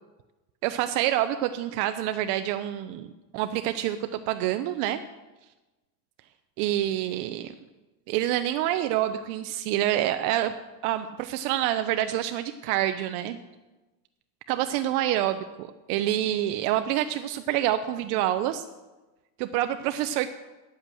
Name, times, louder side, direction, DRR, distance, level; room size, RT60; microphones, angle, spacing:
voice 1, 0.6-5.0 6.6-7.5 8.1-10.5 10.8-13.4 14.5-18.7 19.4-20.3, right 12 dB, 70° right, 9 dB, 0.7 m, -27 dB
9.5 x 8.1 x 7.6 m, 1.1 s
cardioid pair, 175°, 47 cm